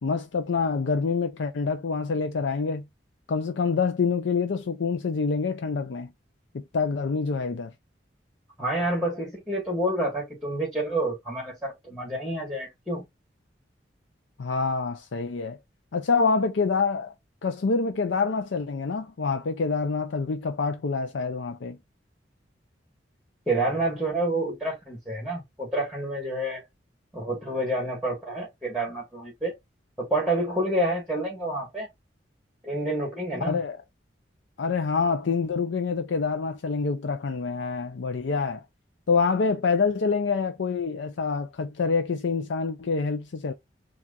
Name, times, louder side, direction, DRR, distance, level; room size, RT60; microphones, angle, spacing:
voice 1, 0.0-2.8 3.3-6.1 6.5-7.7 14.4-15.6 15.9-17.1 17.4-21.8 33.5-33.8 34.6-38.6 39.1-43.5, left 4 dB, 85° left, 0.5 m, -26 dB
voice 2, 8.6-13.0 23.5-26.6 27.1-29.5 30.0-31.9 32.6-33.6, right 1 dB, ahead, 1.6 m, -28 dB
7.2 x 2.4 x 2.5 m
head